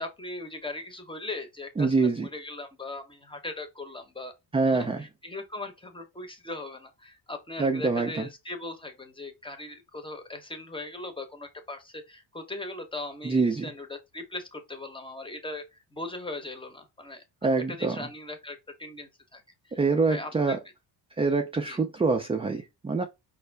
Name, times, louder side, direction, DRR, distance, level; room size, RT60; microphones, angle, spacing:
voice 1, 0.0-4.3 4.7-17.2 17.7-19.8 20.1-20.6 21.7-21.8, left 2 dB, 10° left, 0.8 m, -39 dB
voice 2, 1.8-2.3 4.5-5.0 7.6-8.3 13.2-13.6 17.4-18.1 19.7-20.6 21.2-23.0, right 4 dB, 15° right, 0.4 m, -25 dB
5.3 x 2.6 x 3.3 m
cardioid pair, 150°, 43 cm